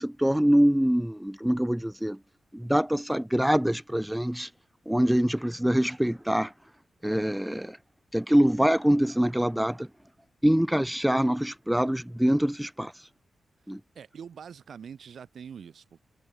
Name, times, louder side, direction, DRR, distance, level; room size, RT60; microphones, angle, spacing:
voice 1, 0.0-2.2 2.5-4.5 4.9-6.5 7.0-7.8 8.1-9.9 10.4-13.1 13.7-13.8, equal, 5° right, 0.3 m, -24 dB
voice 2, 14.0-16.0, right 7 dB, 70° right, 7.1 m, -44 dB
wide cardioid pair, 135°, 0 cm